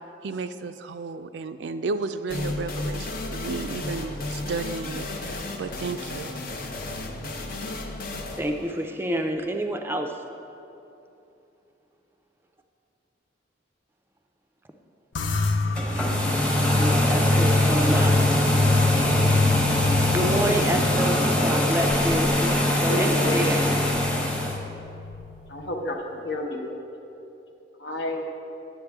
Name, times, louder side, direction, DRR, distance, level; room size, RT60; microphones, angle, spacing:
voice 1, 0.2-6.3, right 4 dB, 75° right, 10 dB, 0.4 m, -33 dB
sound 1, 2.3-9.8, left 2 dB, 50° left, 0.7 m, -34 dB
voice 2, 8.4-10.1 16.8-18.2 20.1-23.6, right 1 dB, 10° right, 4 dB, 0.4 m, -28 dB
sound 2, 15.2-25.8, left 2 dB, 90° left, 0.6 m, -26 dB
sound 3, 15.7-24.6, left 1 dB, 5° left, 0.9 m, -23 dB
voice 3, 22.9-23.6 25.5-26.7 27.8-28.3, left 1 dB, 70° left, 1 dB, 1.0 m, -30 dB
10.5 x 8.1 x 3.5 m, 2.8 s
head